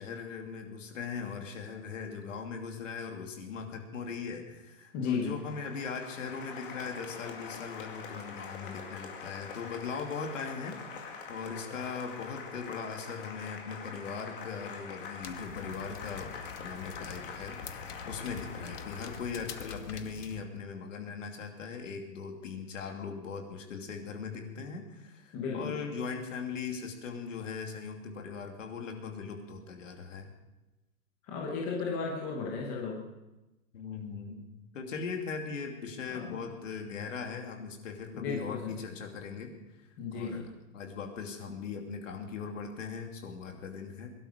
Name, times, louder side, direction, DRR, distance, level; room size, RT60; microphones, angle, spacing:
voice 1, 0.0-16.3 16.6-30.3 33.7-34.5 34.7-39.5 40.1-44.1, left 5 dB, 55° left, 3 dB, 2.8 m, -39 dB
voice 2, 4.9-5.3 25.3-25.8 31.3-33.0 36.1-36.5 38.1-38.8 40.0-40.5, left 4 dB, 10° left, -2 dB, 0.8 m, -35 dB
Applause, 5.2-20.0, left 5 dB, 35° left, 2.3 m, -45 dB
sound 1, 15.2-20.4, left 7 dB, 75° left, 1.5 m, -45 dB
22.0 x 11.5 x 5.2 m, 1.0 s
hypercardioid pair, 170°, 46 cm